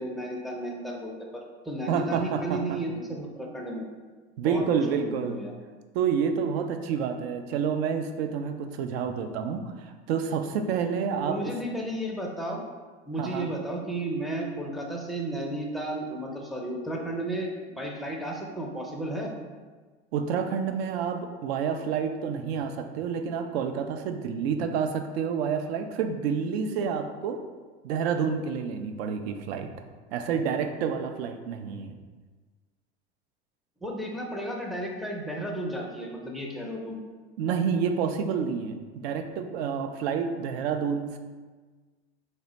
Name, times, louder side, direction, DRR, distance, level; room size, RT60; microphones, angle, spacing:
voice 1, 0.0-3.8 4.4-5.5 11.2-12.6 13.1-19.3 33.8-37.0, right 1 dB, ahead, -1 dB, 0.4 m, -33 dB
voice 2, 1.9-2.8 4.4-5.4 5.9-11.5 13.2-13.5 20.1-27.4 27.8-29.7 30.1-31.9 37.4-41.2, right 6 dB, 65° right, 7 dB, 0.5 m, -29 dB
3.3 x 2.0 x 3.9 m, 1.4 s
hypercardioid pair, 80°, 34 cm